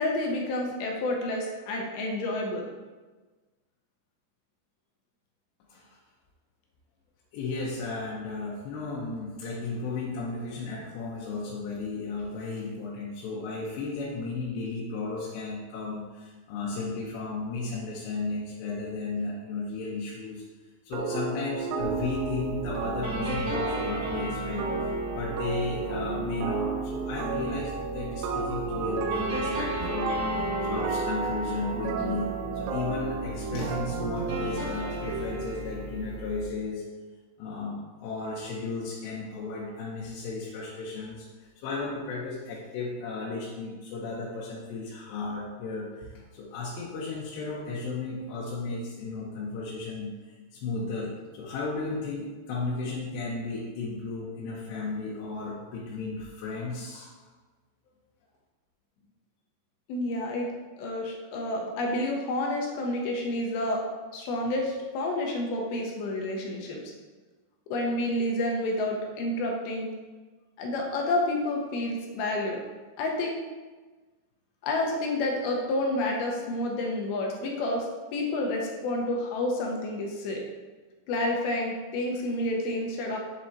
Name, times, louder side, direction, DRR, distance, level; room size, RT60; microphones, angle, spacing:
voice 1, 0.0-2.7 59.9-60.5 60.8-63.8 64.1-66.8 67.7-69.9 70.6-72.6 73.0-73.4 74.6-80.4 81.1-83.2, left 1 dB, 75° left, 0 dB, 2.6 m, -29 dB
voice 2, 7.3-20.4 20.8-36.9 37.4-57.1, left 3 dB, 90° left, -5 dB, 3.1 m, -34 dB
sound 1, 20.9-35.5, right 5 dB, 80° right, 2.4 m, -33 dB
sound 2, 21.8-36.4, right 1 dB, 45° right, 2.2 m, -35 dB
7.5 x 7.3 x 2.8 m, 1.3 s
omnidirectional pair, 4.9 m